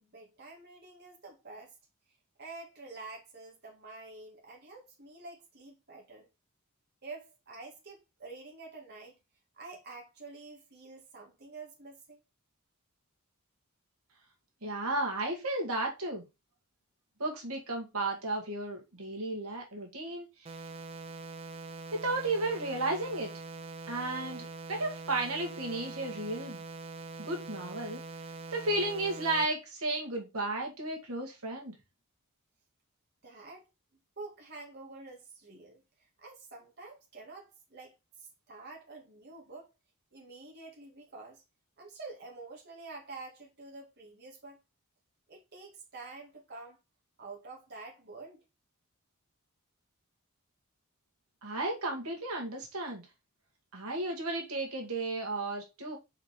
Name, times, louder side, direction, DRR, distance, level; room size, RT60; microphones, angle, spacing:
voice 1, 0.0-1.7 2.4-6.3 7.0-9.2 9.5-12.2 33.2-33.7 34.2-39.7 40.1-41.4 41.8-44.6 45.3-46.8 47.2-48.4, right 3 dB, 50° right, 2.1 m, -48 dB
voice 2, 14.6-16.2 17.2-20.6 21.9-23.3 23.9-26.6 27.2-28.0 28.5-31.7 51.4-53.0 53.7-56.0, right 2 dB, 80° right, 2.0 m, -33 dB
sound 1, 20.5-29.5, right 3 dB, 25° right, 0.6 m, -43 dB
5.1 x 5.0 x 4.6 m
head